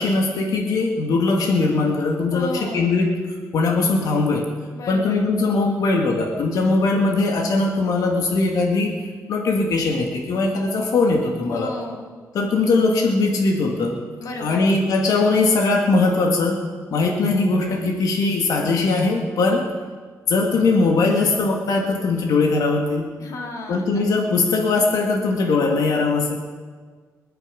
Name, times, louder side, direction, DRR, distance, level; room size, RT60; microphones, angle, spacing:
voice 1, 0.0-3.2 3.5-4.5 4.9-8.9 9.3-11.7 12.3-14.0 14.4-16.7 16.9-19.6 20.3-23.1 23.7-26.3, left 3 dB, 80° left, 1 dB, 2.1 m, -20 dB
voice 2, 2.3-2.9 4.7-5.3 11.5-12.1 14.2-14.7 23.2-24.0, left 3 dB, 65° left, 1 dB, 2.3 m, -33 dB
27.0 x 9.4 x 5.3 m, 1.5 s
wide cardioid pair, 155°, 6 cm